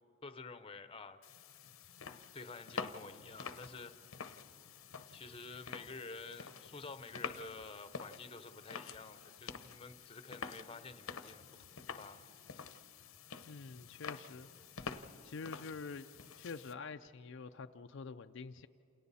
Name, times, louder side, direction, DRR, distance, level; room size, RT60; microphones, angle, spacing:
voice 1, 0.2-1.2 2.3-3.9 5.1-11.4 11.9-12.2, left 3 dB, 25° left, 10 dB, 0.8 m, -50 dB
sound 1, 1.2-16.7, left 5 dB, 85° left, 0.9 m, -48 dB
voice 2, 13.5-14.5 14.8-14.9 15.2-16.1 16.4-18.7, left 4 dB, 60° left, 7 dB, 0.5 m, -46 dB
28.5 x 28.0 x 4.2 m, 2.9 s
head